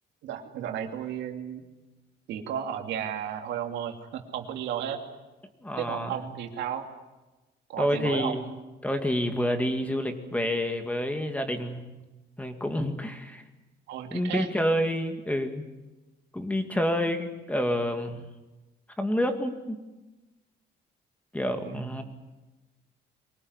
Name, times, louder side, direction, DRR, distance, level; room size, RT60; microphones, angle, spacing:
voice 1, 0.2-1.7 2.3-5.0 5.8-6.9 7.7-8.4 13.9-14.5 21.5-22.0, right 9 dB, 90° right, 4 dB, 2.8 m, -33 dB
voice 2, 5.6-6.2 7.8-8.5 8.8-11.9 12.4-13.4 14.1-15.7 16.3-18.3 19.0-19.8 21.3-22.0, equal, 10° left, 6 dB, 2.2 m, -28 dB
24.0 x 19.0 x 9.8 m, 1.1 s
cardioid pair, 130°, 18 cm